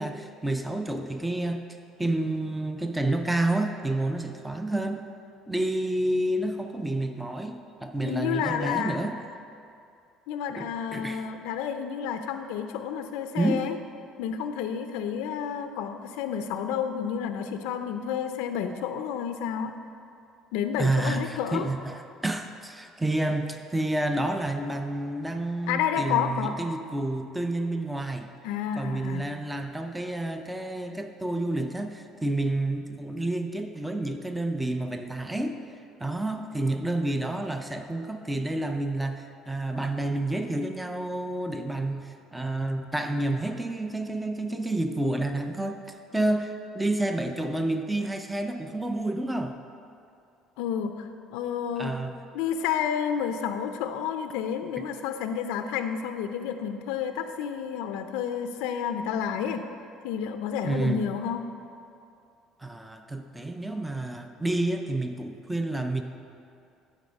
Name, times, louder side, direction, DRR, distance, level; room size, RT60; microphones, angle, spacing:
voice 1, 0.0-1.6 2.0-5.0 5.5-9.1 10.6-11.2 13.4-13.7 20.8-28.3 28.8-35.6 36.0-49.6 51.8-52.2 60.6-61.0 62.6-66.0, right 2 dB, 5° right, 6 dB, 0.4 m, -29 dB
voice 2, 8.0-9.0 10.3-13.8 14.2-19.7 20.5-21.7 25.7-26.6 28.4-29.3 50.6-52.0 52.3-59.6 60.0-61.4, left 8 dB, 90° left, 7 dB, 0.4 m, -30 dB
11.5 x 4.2 x 5.2 m, 2.5 s
cardioid pair, 140°, 0 cm